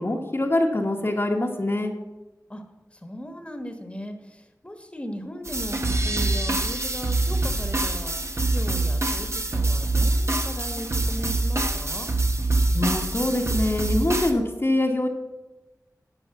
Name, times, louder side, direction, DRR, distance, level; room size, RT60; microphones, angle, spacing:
voice 1, 0.0-1.9 12.7-15.1, left 1 dB, 40° left, 0 dB, 1.2 m, -24 dB
voice 2, 2.9-12.1, equal, 15° left, 6 dB, 1.4 m, -37 dB
sound 1, 5.5-14.3, right 2 dB, 45° right, 1.2 m, -25 dB
11.5 x 5.3 x 7.0 m, 1.1 s
wide cardioid pair, 55°, 7 cm